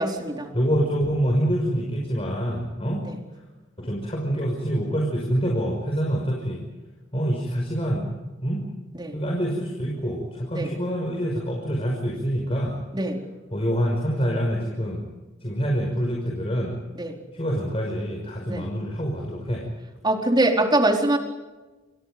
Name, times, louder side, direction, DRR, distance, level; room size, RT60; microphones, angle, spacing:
voice 1, 0.0-0.5 8.9-9.1 10.5-10.7 12.9-13.2 16.9-17.1 18.5-18.7 20.0-21.2, right 1 dB, 20° right, 2 dB, 4.3 m, -23 dB
voice 2, 0.5-3.0 3.8-6.6 7.1-8.6 9.1-12.8 13.5-15.0 15.4-16.7 17.3-19.7, equal, 30° left, 0 dB, 5.7 m, -26 dB
29.0 x 28.0 x 5.2 m, 1.2 s
head